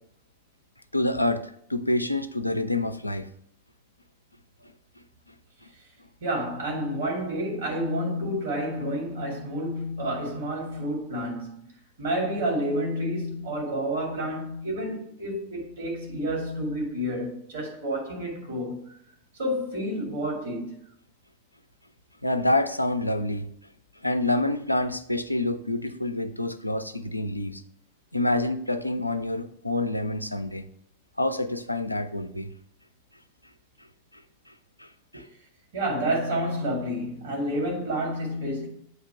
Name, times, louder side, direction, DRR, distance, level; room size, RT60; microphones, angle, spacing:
voice 1, 0.9-3.3 22.2-23.5 24.0-27.6 28.1-30.7 31.2-32.5 34.8-34.9 35.1-35.3, left 2 dB, 90° left, 0.3 m, -27 dB
voice 2, 6.2-11.6 12.0-18.8 19.4-20.8 35.1-35.2 35.7-38.7, equal, 65° right, 2.2 m, -29 dB
7.8 x 2.9 x 4.8 m
figure-of-eight pair, 90°, 0 cm